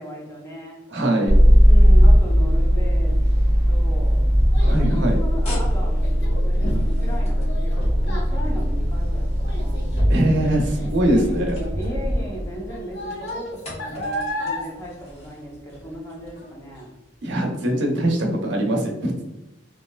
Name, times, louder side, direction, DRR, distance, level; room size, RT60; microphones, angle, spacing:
voice 1, 0.0-0.8 1.6-3.2 3.7-4.2 4.6-9.9 11.1-16.9, equal, 15° left, -2 dB, 0.7 m, -36 dB
voice 2, 0.9-1.3 4.6-5.2 10.1-11.6 17.2-19.4, right 1 dB, 70° right, 1 dB, 0.7 m, -22 dB
sound 1, 1.3-12.8 13.1-14.5 14.8-15.1 15.8-15.9 16.3-16.4, equal, 35° left, 1.0 m, -18 dB
Child speech kid speaking, 3.5-16.0 16.3-16.8 17.3-17.4, left 1 dB, 65° left, 0.7 m, -35 dB
3.2 x 2.7 x 2.3 m, 0.98 s
head